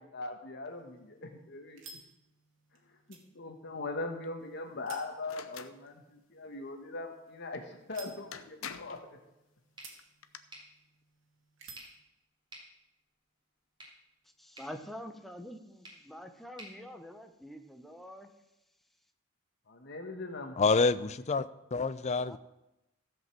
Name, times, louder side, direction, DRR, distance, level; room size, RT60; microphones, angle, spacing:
voice 1, 0.0-1.8 3.1-9.2 19.7-20.6, left 2 dB, 55° left, 5 dB, 1.3 m, -41 dB
sound 1, 0.6-12.0, right 4 dB, 65° right, 2.2 m, -57 dB
sound 2, 5.3-5.8 7.8-7.9 8.3-9.1 10.0-10.4, left 7 dB, 90° left, 0.8 m, -44 dB
sound 3, 9.7-17.8, right 1 dB, 25° right, 3.2 m, -56 dB
voice 2, 14.4-18.3 22.2-22.4, equal, ahead, 5 dB, 0.8 m, -46 dB
voice 3, 20.6-22.4, left 4 dB, 35° left, 15 dB, 0.4 m, -28 dB
14.5 x 5.3 x 7.5 m, 0.92 s
head